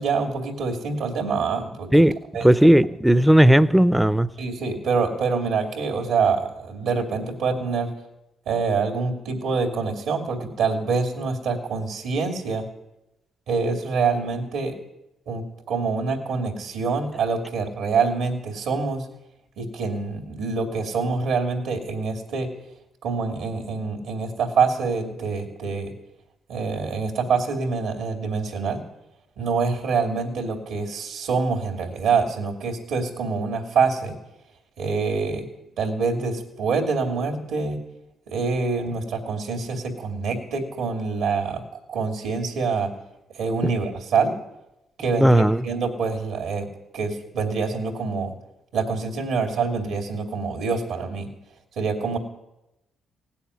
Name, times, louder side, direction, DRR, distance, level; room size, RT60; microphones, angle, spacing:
voice 1, 0.0-2.0 2.3-2.5 4.4-7.9 8.5-12.7 13.5-14.8 15.3-19.1 19.6-22.5 23.0-25.9 26.5-28.8 29.4-34.2 34.8-35.5 35.8-37.8 38.3-41.6 41.9-42.9 43.3-44.3 45.0-46.7 46.9-48.3 48.7-51.3 51.8-52.2, right 4 dB, 80° right, 4 dB, 2.6 m, -25 dB
voice 2, 1.9-4.3 43.6-43.7 45.2-45.6, right 1 dB, 5° right, 16 dB, 0.5 m, -16 dB
17.0 x 7.1 x 9.7 m, 0.93 s
cardioid pair, 90°, 0 cm